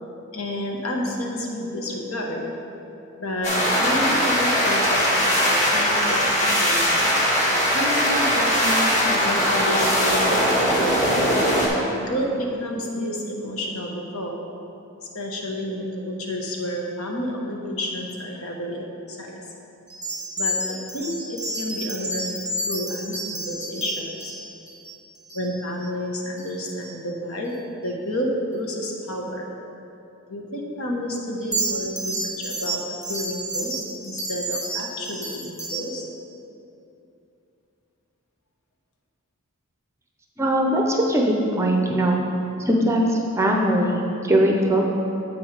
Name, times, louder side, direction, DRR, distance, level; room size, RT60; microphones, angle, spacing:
voice 1, 0.3-2.5 3.2-7.0 7.7-11.2 12.0-14.4 15.1-19.4 20.4-22.4 22.7-24.3 25.3-29.5 30.3-36.1, equal, 75° left, 0 dB, 1.1 m, -30 dB
sound 1, 3.4-11.7, equal, 35° left, 1.4 m, -20 dB
sound 2, 19.9-25.9 26.4-26.5 26.8-27.0 31.4-35.9, right 1 dB, 10° left, 1.8 m, -31 dB
voice 2, 40.4-42.2 42.7-44.8, right 1 dB, 10° right, 0 dB, 0.6 m, -20 dB
7.9 x 5.4 x 4.8 m, 2.8 s
head